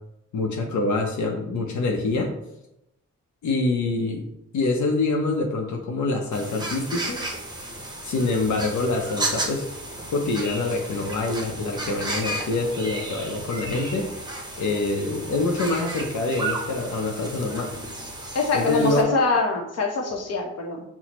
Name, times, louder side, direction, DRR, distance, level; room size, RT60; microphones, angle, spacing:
voice 1, 0.3-2.3 3.4-4.3 4.5-7.2 8.0-9.6 10.1-14.1 14.6-17.7 18.5-19.1, left 3 dB, 90° left, 1 dB, 0.6 m, -25 dB
sound 1, 6.3-19.0, right 2 dB, 15° right, 0.7 m, -33 dB
voice 2, 18.3-20.8, left 3 dB, 60° left, 1 dB, 0.8 m, -24 dB
5.7 x 2.0 x 2.9 m, 0.84 s
wide cardioid pair, 110°, 29 cm